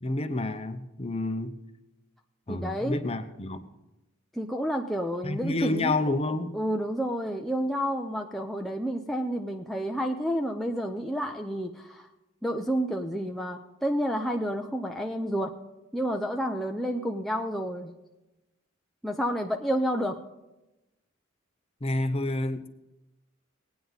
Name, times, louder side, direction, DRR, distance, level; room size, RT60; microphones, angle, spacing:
voice 1, 0.0-1.5 2.5-3.6 5.2-6.5 21.8-22.7, left 2 dB, 30° left, 8 dB, 0.8 m, -29 dB
voice 2, 2.5-3.0 4.3-6.0 6.5-12.1 12.4-15.5 15.9-17.9 19.0-20.2, equal, ahead, 1 dB, 0.5 m, -30 dB
18.5 x 9.4 x 4.0 m, 1.0 s
head